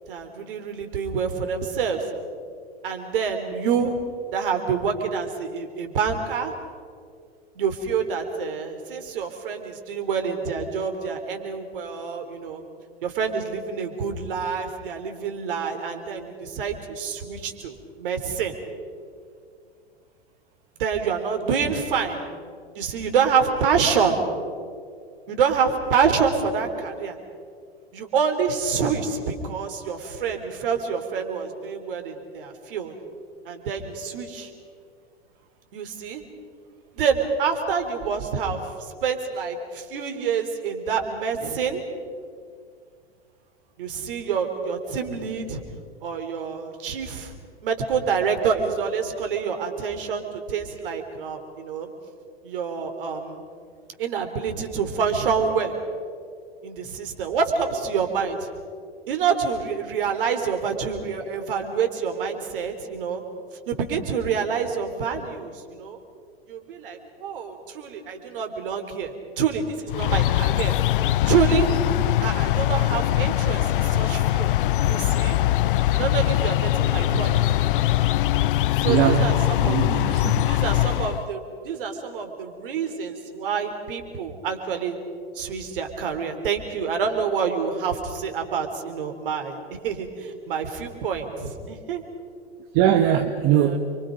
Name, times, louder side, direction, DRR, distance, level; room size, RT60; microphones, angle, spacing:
voice 1, 0.1-2.0 2.8-4.0 4.3-6.5 7.6-12.6 13.0-18.5 20.8-22.2 22.8-24.2 25.3-27.2 27.9-32.9 33.5-34.5 35.7-36.2 37.0-41.8 43.8-45.6 46.0-47.3 47.6-51.9 52.4-53.4 54.0-55.7 56.6-58.4 59.1-63.2 63.7-66.0 66.5-70.8 71.3-71.7 72.2-74.6 74.8-75.4 75.9-77.4 78.8-80.1 80.4-85.0 85.4-92.0 93.5-93.8, right 6 dB, 60° right, 5 dB, 3.7 m, -27 dB
sound 1, 69.9-81.3, left 14 dB, 55° left, 0.5 m, -22 dB
voice 2, 78.8-80.5 92.7-93.8, right 11 dB, 40° right, 7 dB, 1.3 m, -21 dB
29.5 x 24.0 x 5.3 m, 2.1 s
figure-of-eight pair, 100°, 31 cm